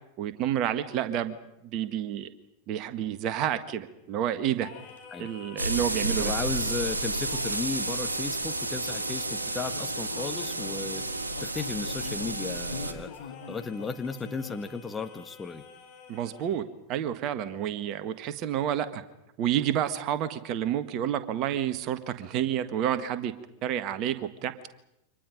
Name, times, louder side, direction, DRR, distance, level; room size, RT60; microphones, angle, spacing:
voice 1, 0.2-1.3 1.6-2.3 2.7-4.7 5.2-6.3 16.1-19.0 19.4-23.3 23.6-24.5, right 10 dB, 40° right, 11 dB, 1.6 m, -29 dB
Singing, 4.6-16.7, left 6 dB, 40° left, 6.2 m, -50 dB
sound 1, 4.9-5.1 9.7-14.7, left 6 dB, 65° left, 2.3 m, -43 dB
sound 2, 5.6-12.9, right 2 dB, 80° right, 2.0 m, -31 dB
voice 2, 6.0-11.0 11.4-15.6, left 4 dB, 15° left, 6 dB, 1.4 m, -35 dB
29.0 x 25.5 x 5.3 m, 0.85 s
figure-of-eight pair, 90°, 0 cm